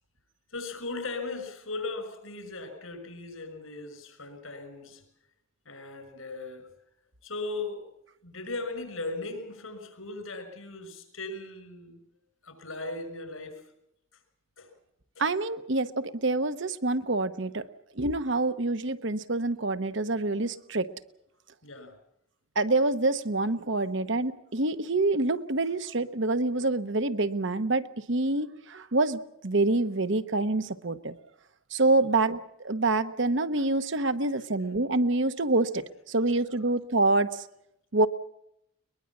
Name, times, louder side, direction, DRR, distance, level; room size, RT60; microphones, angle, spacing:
voice 1, 0.5-5.0 5.7-6.7 7.2-7.9 8.2-12.0 12.4-13.6 14.6-14.7 15.2-15.3 21.6-22.0, left 3 dB, 80° left, 8 dB, 5.8 m, -38 dB
voice 2, 15.2-17.7 18.0-20.9 22.5-31.1 31.7-37.4 37.9-38.1, right 2 dB, 60° right, 10 dB, 1.1 m, -26 dB
22.5 x 21.5 x 7.3 m, 0.79 s
head